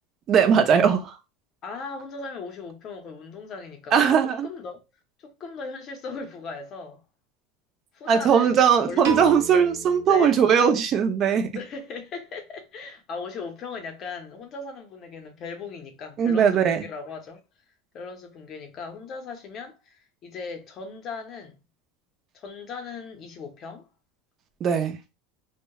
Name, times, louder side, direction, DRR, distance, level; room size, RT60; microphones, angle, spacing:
voice 1, 0.3-1.2 3.9-4.5 8.1-11.5 16.2-16.8 24.6-25.0, right 7 dB, 30° right, 0.4 m, -19 dB
voice 2, 1.6-4.8 5.2-7.0 7.9-9.2 10.1-10.7 11.5-17.4 17.9-21.6 22.3-23.9, left 5 dB, 30° left, 0.6 m, -38 dB
Piano, 9.0-11.3, right 5 dB, 65° right, 0.7 m, -36 dB
2.9 x 2.1 x 2.2 m
supercardioid pair, 160°, 0 cm